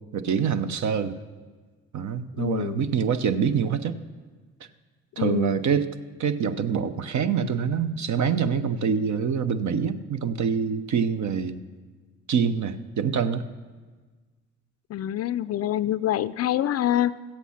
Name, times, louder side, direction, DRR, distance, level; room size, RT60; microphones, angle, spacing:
voice 1, 0.1-1.2 1.9-4.0 5.2-5.9 6.2-11.6 12.3-13.4, right 7 dB, 55° right, 11 dB, 0.8 m, -25 dB
voice 2, 2.4-2.8 5.2-5.7 14.9-17.2, left 12 dB, 45° left, 15 dB, 0.4 m, -26 dB
15.0 x 8.2 x 5.7 m, 1.4 s
hypercardioid pair, 55°, 36 cm